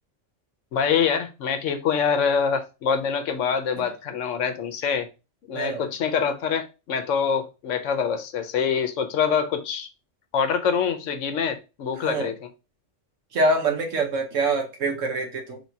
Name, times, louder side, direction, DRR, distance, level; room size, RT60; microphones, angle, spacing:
voice 1, 0.7-5.1 5.5-9.9 10.3-12.5, left 6 dB, 85° left, 1.1 m, -25 dB
voice 2, 13.3-15.6, right 2 dB, 90° right, 1.4 m, -25 dB
3.3 x 2.7 x 4.5 m
omnidirectional pair, 1.3 m